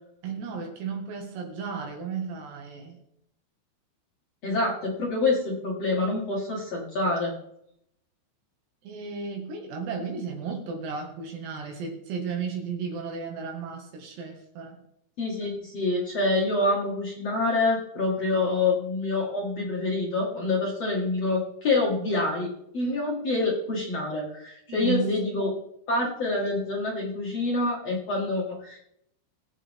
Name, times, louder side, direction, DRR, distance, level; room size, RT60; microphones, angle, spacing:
voice 1, 0.2-3.0 8.8-14.8 24.7-25.4, right 5 dB, 65° right, 2 dB, 3.7 m, -34 dB
voice 2, 4.4-7.3 15.2-25.5 25.9-28.8, left 2 dB, 50° left, -3 dB, 1.9 m, -26 dB
22.5 x 8.3 x 3.6 m, 0.77 s
omnidirectional pair, 5.8 m